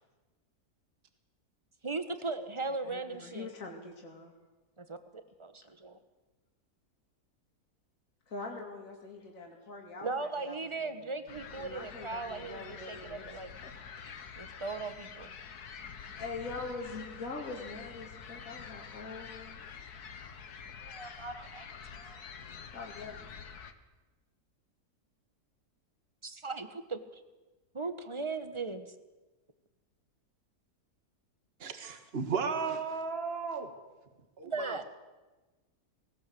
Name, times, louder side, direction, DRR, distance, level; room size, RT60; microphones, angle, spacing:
voice 1, 1.8-3.5 4.8-5.0 5.4-6.0 10.0-13.5 14.4-15.3 20.8-21.7 21.9-22.3 26.2-27.2 27.7-28.9 34.4-34.8, right 3 dB, 20° right, 10 dB, 1.2 m, -38 dB
voice 2, 2.7-4.3 8.3-11.2 11.6-13.3 13.6-13.7 15.9-19.6 22.7-23.3, left 3 dB, 60° left, 1 dB, 2.8 m, -43 dB
sound 1, 11.3-23.7, left 6 dB, 85° left, 1.8 m, -47 dB
voice 3, 31.6-33.7 34.4-34.8, right 5 dB, 40° right, 7 dB, 1.8 m, -34 dB
19.0 x 18.5 x 7.8 m, 1.2 s
omnidirectional pair, 1.6 m